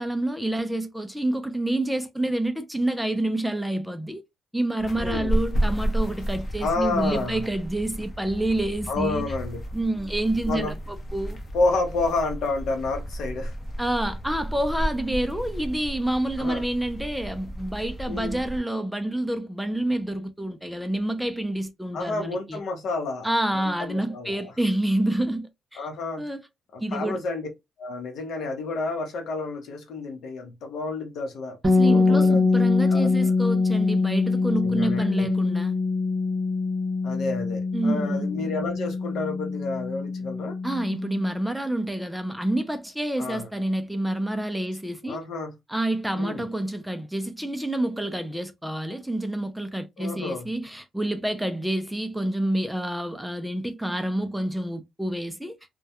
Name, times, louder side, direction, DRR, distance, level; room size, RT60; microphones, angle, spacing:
voice 1, 0.0-4.2 4.5-9.3 9.7-11.4 13.8-22.6 23.2-25.9 26.2-26.4 26.8-27.2 31.6-35.8 37.7-38.3 40.6-45.2 45.7-55.6, right 1 dB, 5° right, 0.4 m, -28 dB
sound 1, 4.8-18.6, right 1 dB, 40° left, 0.7 m, -32 dB
voice 2, 5.0-5.3 6.6-7.4 8.9-9.6 10.5-10.7 11.5-13.5 16.4-16.6 18.1-18.4 21.9-24.4 25.8-26.2 26.7-27.5 27.8-31.6 31.8-33.1 34.6-35.3 37.0-40.6 43.2-43.5 45.0-45.5 46.1-46.4 50.0-50.5, left 3 dB, 70° left, 0.8 m, -30 dB
sound 2, 31.6-41.4, left 3 dB, 30° right, 0.8 m, -24 dB
2.3 x 2.1 x 2.7 m
cardioid pair, 90°, 0 cm